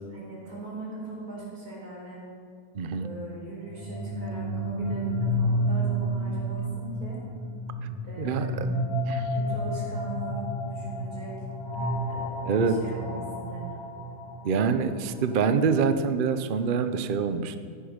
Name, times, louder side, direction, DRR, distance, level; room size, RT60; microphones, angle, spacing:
voice 1, 0.1-2.2 2.9-7.2 8.0-11.4 12.1-13.8, right 2 dB, 85° right, -4 dB, 4.8 m, -40 dB
voice 2, 2.7-3.1 8.2-8.7 9.1-9.3 12.4-12.8 14.4-17.6, right 5 dB, 50° right, 10 dB, 0.6 m, -25 dB
sound 1, 3.6-15.5, equal, 40° left, 3.0 m, -31 dB
15.0 x 10.5 x 5.1 m, 2.2 s
omnidirectional pair, 1.6 m